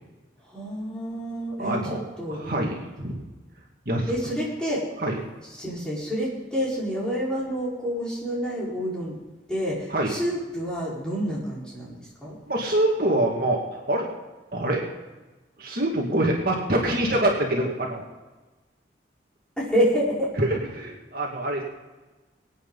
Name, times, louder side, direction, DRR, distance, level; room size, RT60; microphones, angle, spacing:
voice 1, 0.5-2.7 3.1-3.2 4.1-4.8 5.6-9.1 9.5-12.3 19.6-20.3, equal, 5° left, -7 dB, 5.0 m, -28 dB
voice 2, 1.6-2.0 2.3-3.2 3.9-4.1 5.0-5.2 9.9-10.1 12.5-14.1 14.5-14.9 15.6-18.0 20.4-21.6, right 1 dB, 50° right, -1 dB, 2.3 m, -25 dB
24.0 x 9.4 x 4.1 m, 1.2 s
head